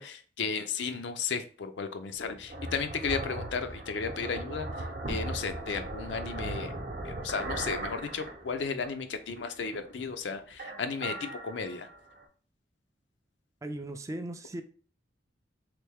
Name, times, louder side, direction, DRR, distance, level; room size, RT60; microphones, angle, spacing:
voice 1, 0.0-4.7 5.1-6.7 7.0-11.9, left 5 dB, 75° left, 0.5 m, -34 dB
sound 1, 2.1-9.0 9.4-10.2 10.5-12.2, right 2 dB, 55° right, 0.7 m, -38 dB
voice 2, 13.6-14.6, right 1 dB, 20° right, 0.3 m, -37 dB
3.3 x 3.1 x 3.3 m
head